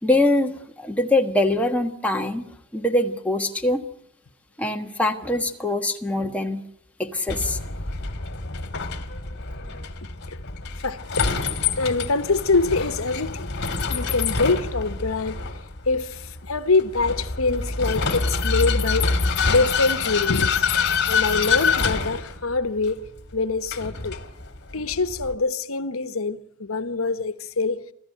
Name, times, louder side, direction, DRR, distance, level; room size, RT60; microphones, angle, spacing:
voice 1, 0.0-3.8 4.6-6.6 7.0-7.6, left 1 dB, 5° left, 1.4 m, -23 dB
Vehicle, 7.3-25.3, left 4 dB, 55° left, 2.1 m, -26 dB
voice 2, 10.8-11.3 11.7-13.5 13.9-15.4 15.9-19.1 19.5-20.6 21.1-23.0 23.3-24.2 24.7-27.8, left 3 dB, 80° left, 1.1 m, -24 dB
26.0 x 14.5 x 9.1 m
head